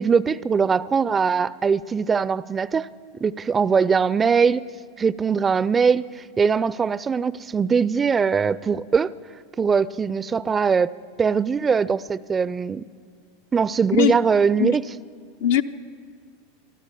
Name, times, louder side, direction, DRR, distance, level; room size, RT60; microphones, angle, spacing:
voice 1, 0.0-2.9 3.2-4.7 5.0-9.1 9.6-10.9 11.2-12.9 13.5-14.8, right 6 dB, 20° right, 0.4 m, -21 dB
voice 2, 13.9-14.2 14.6-14.8 15.4-15.6, left 10 dB, 65° left, 0.7 m, -20 dB
23.5 x 13.0 x 8.4 m
hypercardioid pair, 90°, 0 cm